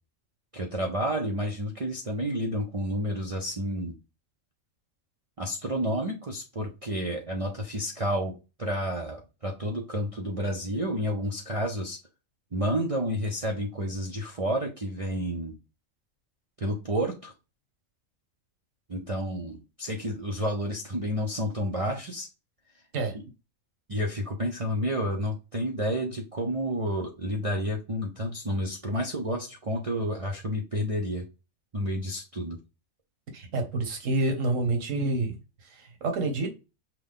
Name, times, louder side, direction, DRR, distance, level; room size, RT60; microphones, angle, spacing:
voice 1, 0.5-3.9 5.4-8.3 8.6-12.0 12.5-15.6 16.6-17.3 18.9-22.3 23.1-23.2 23.9-31.3 31.7-32.6, equal, 35° right, 0.7 m, -30 dB
voice 2, 33.3-36.5, right 2 dB, 75° right, 1.6 m, -28 dB
6.1 x 2.3 x 3.6 m
omnidirectional pair, 1.3 m